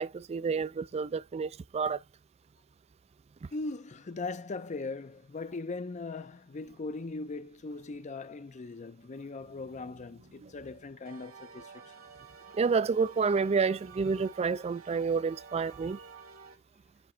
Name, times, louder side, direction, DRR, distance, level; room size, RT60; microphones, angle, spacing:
voice 1, 0.0-2.0 10.4-10.5 12.5-16.0, right 5 dB, 30° right, 0.3 m, -29 dB
voice 2, 3.5-11.9, left 3 dB, 35° left, 0.5 m, -39 dB
sound 1, 9.4-16.6, right 5 dB, 85° right, 2.3 m, -52 dB
9.8 x 3.4 x 4.3 m
head